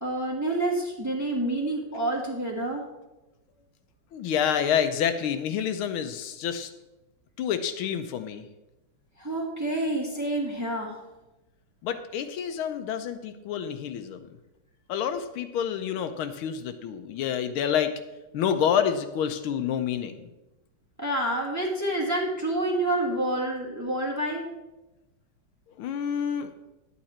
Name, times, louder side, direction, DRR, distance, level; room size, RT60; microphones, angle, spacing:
voice 1, 0.0-2.9 9.2-11.0 21.0-24.5, right 1 dB, 10° right, -1 dB, 1.3 m, -28 dB
voice 2, 4.1-6.7 7.4-8.4 11.8-14.2 14.9-17.9 18.3-20.2 25.8-26.5, left 8 dB, 80° left, 9 dB, 1.5 m, -28 dB
11.0 x 8.5 x 4.3 m, 1.0 s
omnidirectional pair, 2.3 m